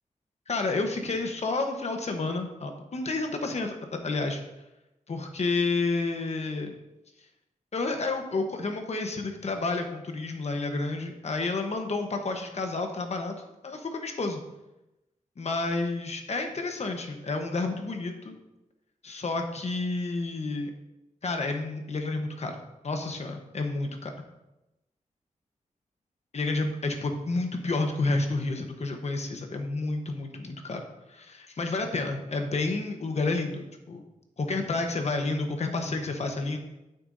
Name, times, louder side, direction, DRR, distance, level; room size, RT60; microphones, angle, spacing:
voice 1, 0.5-3.8 4.0-4.4 5.1-6.7 7.7-13.3 13.6-14.4 15.4-18.3 19.0-20.7 21.2-24.1 26.3-30.8 31.1-34.0 34.4-36.6, left 3 dB, 55° left, 4 dB, 1.1 m, -30 dB
9.5 x 8.6 x 2.7 m, 0.96 s
wide cardioid pair, 130°, 14 cm